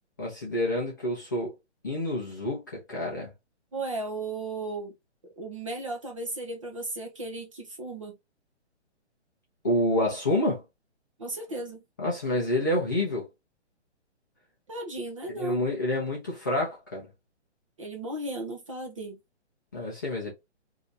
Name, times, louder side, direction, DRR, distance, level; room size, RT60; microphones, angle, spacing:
voice 1, 0.2-1.5 1.8-3.3 9.6-10.6 12.0-13.3 15.4-17.1 19.7-20.3, left 1 dB, 15° left, 0.6 m, -28 dB
voice 2, 3.7-4.9 5.2-8.2 11.2-11.8 14.7-15.7 17.8-19.2, right 2 dB, 30° right, 0.6 m, -35 dB
2.8 x 2.6 x 3.3 m
hypercardioid pair, 170°, 35 cm